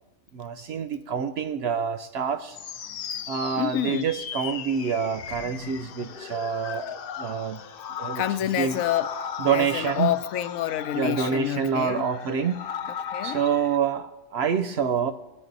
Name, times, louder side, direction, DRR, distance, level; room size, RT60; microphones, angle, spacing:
voice 1, 0.3-2.6 3.3-7.6 8.0-8.2 8.6-8.8 9.4-10.1 10.9-12.7 13.2-15.1, right 7 dB, 60° right, 0.7 m, -27 dB
sound 1, 2.5-13.8, left 8 dB, 65° left, 0.6 m, -37 dB
voice 2, 3.6-4.1 8.1-9.1 9.5-12.0 13.1-13.4, left 12 dB, 90° left, 1.0 m, -27 dB
20.0 x 9.7 x 3.9 m
omnidirectional pair, 1.4 m